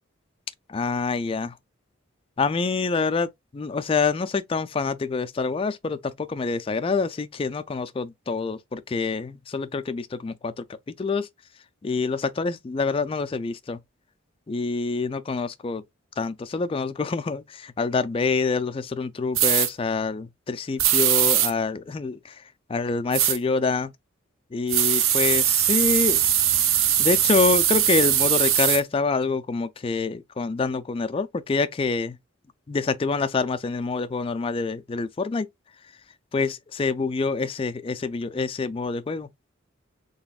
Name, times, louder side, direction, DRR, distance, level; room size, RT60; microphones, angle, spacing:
voice 1, 0.7-1.5 2.4-10.6 11.0-11.3 11.8-13.8 14.5-15.8 16.2-22.4 22.7-23.9 24.5-26.2 26.5-26.6 27.0-32.2 32.7-35.5 36.3-39.3, left 4 dB, 25° left, 0.3 m, -26 dB
sound 1, 19.4-19.7 20.8-21.5 23.1-23.4 24.7-28.8, right 10 dB, 80° right, 0.6 m, -21 dB
3.9 x 3.5 x 2.3 m
head